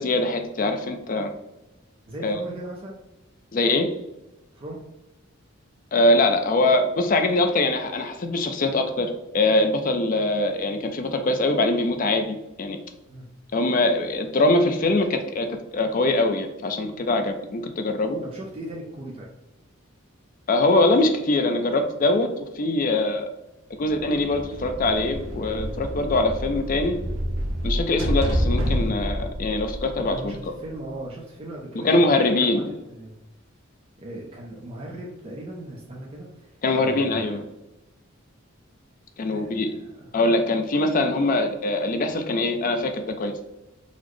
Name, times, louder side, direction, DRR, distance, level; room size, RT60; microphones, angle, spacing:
voice 1, 0.0-1.3 2.2-2.4 3.5-3.9 5.9-12.8 13.5-15.5 15.7-18.2 20.5-23.3 23.8-27.0 27.6-30.4 31.7-32.7 36.6-37.4 39.2-39.7 40.1-43.4, left 2 dB, 40° left, 7 dB, 0.4 m, -23 dB
voice 2, 2.1-3.0 4.5-4.8 13.1-13.3 18.2-19.3 30.1-33.2 34.0-37.4 39.3-40.1, right 1 dB, 25° right, -3 dB, 0.4 m, -38 dB
sound 1, 23.9-30.6, equal, 80° right, 0.7 m, -28 dB
3.9 x 2.0 x 3.1 m, 0.97 s
head